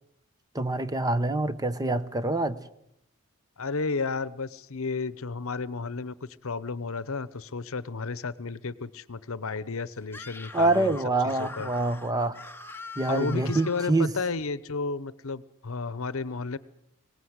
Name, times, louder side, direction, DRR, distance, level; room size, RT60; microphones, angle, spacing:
voice 1, 0.5-2.6 10.5-12.4 13.0-14.1, right 2 dB, 15° right, 13 dB, 0.9 m, -26 dB
voice 2, 3.6-6.1 6.4-11.0 11.2-11.7 13.1-16.6, left 4 dB, 65° left, 18 dB, 0.9 m, -32 dB
Screaming, 10.0-14.0, left 3 dB, 10° left, 1.1 m, -43 dB
23.5 x 18.5 x 8.0 m, 0.78 s
head